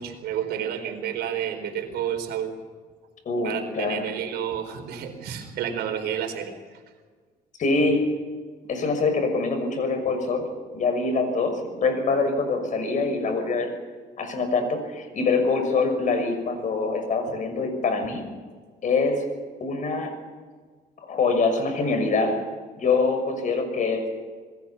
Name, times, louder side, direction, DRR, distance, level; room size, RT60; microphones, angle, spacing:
voice 1, 0.0-2.5 3.4-6.6, right 9 dB, 75° right, 6 dB, 4.5 m, -30 dB
voice 2, 3.2-4.0 7.6-8.1 8.7-10.5 10.7-13.7 14.2-18.2 18.8-19.2 19.6-20.1 21.0-22.4 22.8-24.1, left 3 dB, 50° left, 7 dB, 6.2 m, -24 dB
27.5 x 21.0 x 5.8 m, 1.5 s
cardioid pair, 110°, 17 cm